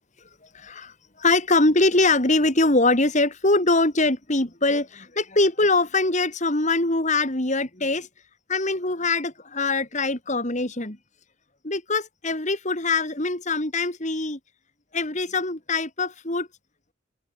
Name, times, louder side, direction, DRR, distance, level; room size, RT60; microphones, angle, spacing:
voice 1, 0.5-8.1 8.5-11.0 11.6-14.4 14.9-16.5, left 2 dB, 35° left, 2.7 m, -23 dB
head